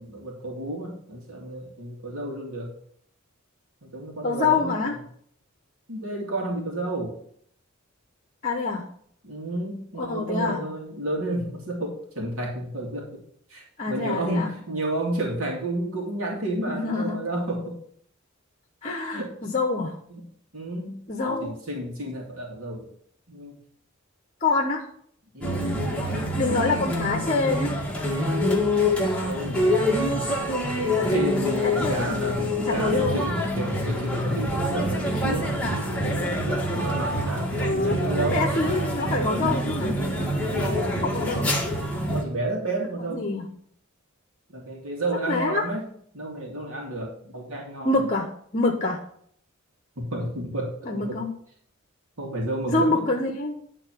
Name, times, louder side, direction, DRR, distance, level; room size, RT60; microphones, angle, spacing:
voice 1, 0.0-2.7 3.8-4.9 5.9-7.2 9.2-13.2 13.5-17.8 19.1-19.4 20.1-20.3 20.5-21.1 21.4-22.9 23.3-23.6 25.3-26.4 29.1-30.4 30.9-32.4 32.7-38.5 40.5-40.9 42.1-43.2 44.5-45.9 46.1-48.0 50.0-51.2 52.2-53.1, right 1 dB, 90° right, -1 dB, 2.5 m, -31 dB
voice 2, 4.2-5.0 8.4-8.9 10.0-10.6 13.8-14.5 16.7-17.2 18.8-20.0 21.1-21.5 24.4-24.9 26.4-27.7 31.6-32.2 32.7-33.2 37.6-38.0 38.3-40.0 41.0-41.5 43.1-43.5 45.3-45.7 47.8-49.0 50.9-51.3 52.7-53.6, left 3 dB, 35° left, 3 dB, 1.1 m, -26 dB
sound 1, 25.4-42.2, left 1 dB, 5° left, 1.7 m, -26 dB
10.5 x 3.9 x 7.5 m, 0.63 s
head